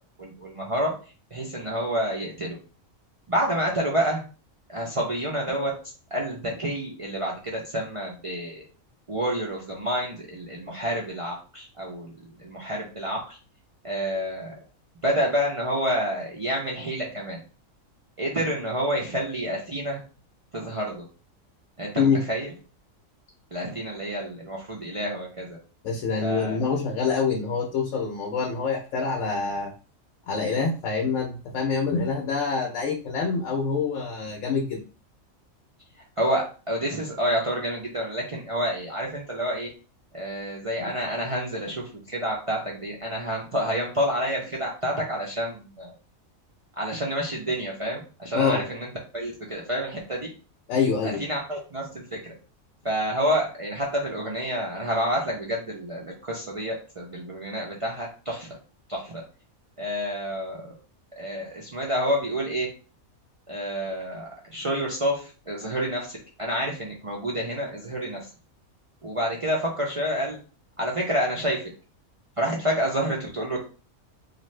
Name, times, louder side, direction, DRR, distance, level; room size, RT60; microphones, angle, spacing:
voice 1, 0.2-0.9 1.3-2.6 3.3-4.2 4.7-5.7 6.1-8.6 9.1-13.4 13.8-14.5 15.0-17.4 18.2-20.0 20.5-21.1 21.8-22.5 23.5-25.6 26.2-26.6 36.2-39.7 40.1-45.9 46.8-48.9 49.1-50.3 51.0-52.3 52.8-58.5 58.9-59.2 59.8-60.7 61.2-62.7 63.5-68.2 69.0-70.4 70.8-71.7 72.4-73.6, equal, 55° right, -3 dB, 0.3 m, -28 dB
voice 2, 25.8-29.7 30.3-34.8 40.8-40.9 48.3-48.6 50.7-51.2, left 5 dB, 70° left, 1 dB, 0.9 m, -26 dB
2.6 x 2.4 x 3.1 m, 0.35 s
omnidirectional pair, 1.4 m